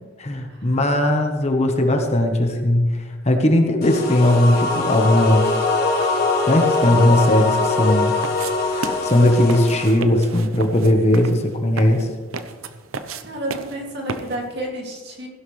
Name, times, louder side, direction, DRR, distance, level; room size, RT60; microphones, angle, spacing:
voice 1, 0.2-2.8 3.2-5.5 6.5-8.1 8.7-12.1, left 1 dB, 30° left, 4 dB, 1.1 m, -18 dB
sound 1, 3.8-9.9, left 3 dB, 45° left, 3.5 m, -22 dB
sound 2, 8.2-14.6, right 4 dB, 75° right, 0.8 m, -34 dB
voice 2, 13.2-15.3, right 1 dB, 50° right, 0 dB, 2.4 m, -31 dB
16.0 x 11.5 x 3.3 m, 1.4 s
head